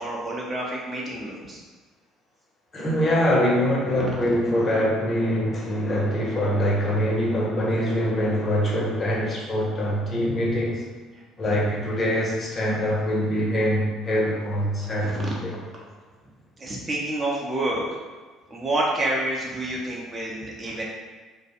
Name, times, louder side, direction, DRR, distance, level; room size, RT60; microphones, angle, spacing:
voice 1, 0.0-1.6 3.9-4.1 11.1-11.2 14.8-15.4 16.6-17.8 18.5-20.8, right 1 dB, 30° right, -3 dB, 0.6 m, -28 dB
voice 2, 2.7-10.8 11.4-15.5, equal, 35° left, -3 dB, 0.6 m, -24 dB
2.4 x 2.0 x 2.8 m, 1.4 s
figure-of-eight pair, 55°, 0 cm